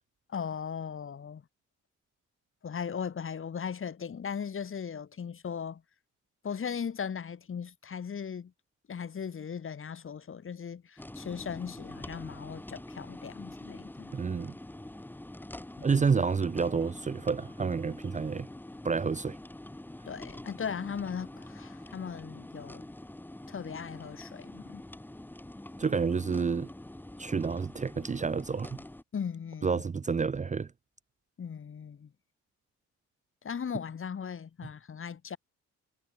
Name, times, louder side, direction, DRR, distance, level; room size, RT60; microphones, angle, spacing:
voice 1, 0.3-1.4 2.6-5.8 6.4-8.5 8.9-14.1 15.8-16.0 20.1-22.9 23.5-24.8 29.1-29.8 31.4-32.1 33.4-35.4, left 7 dB, 45° left, 2.8 m, -38 dB
sound 1, 11.0-29.0, left 1 dB, 5° left, 1.2 m, -45 dB
voice 2, 14.1-14.5 15.8-18.5 18.8-19.4 25.8-26.7 27.2-28.8 29.6-30.7, right 5 dB, 25° right, 0.7 m, -29 dB
cardioid pair, 90°, 30 cm